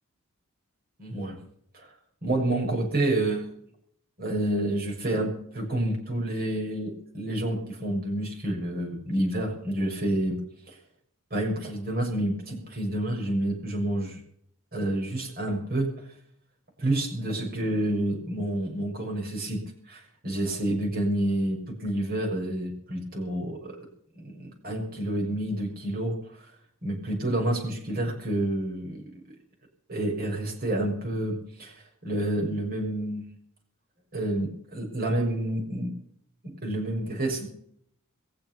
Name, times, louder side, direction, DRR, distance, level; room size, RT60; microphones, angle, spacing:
voice 1, 1.0-1.4 2.2-3.5 4.2-10.4 10.7-10.8 11.3-14.2 14.7-15.9 16.8-23.8 24.1-26.2 26.8-29.2 29.9-31.8 32.0-33.3 34.1-35.9 36.4-37.5, right 1 dB, 45° right, 0 dB, 6.5 m, -29 dB
22.5 x 8.0 x 7.1 m, 0.65 s
head